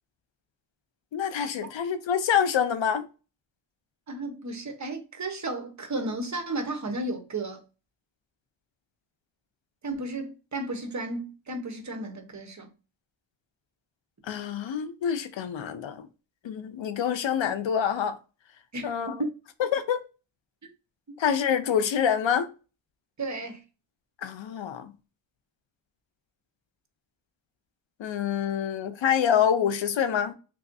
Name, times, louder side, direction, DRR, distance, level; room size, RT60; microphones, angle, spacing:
voice 1, 1.1-3.1 14.3-16.1 16.4-18.2 18.8-19.1 19.7-20.0 21.2-22.5 24.2-24.9 28.0-30.3, left 8 dB, 70° left, 0.6 m, -26 dB
voice 2, 4.1-7.6 9.8-12.7 18.7-19.3 23.2-23.6, right 2 dB, 40° right, 1.0 m, -33 dB
3.7 x 3.0 x 2.6 m
cardioid pair, 75°, 46 cm